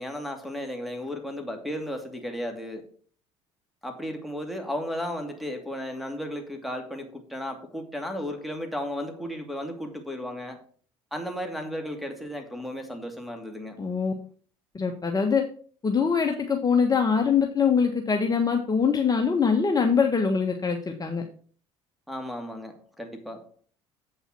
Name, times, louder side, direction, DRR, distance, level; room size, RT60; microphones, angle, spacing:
voice 1, 0.0-2.9 3.8-10.6 11.1-13.8 22.1-23.5, equal, ahead, 2.5 m, -34 dB
voice 2, 13.8-14.1 14.7-15.4 15.8-21.2, left 6 dB, 25° left, 1.4 m, -23 dB
8.2 x 5.5 x 6.0 m
hypercardioid pair, 65°, 15 cm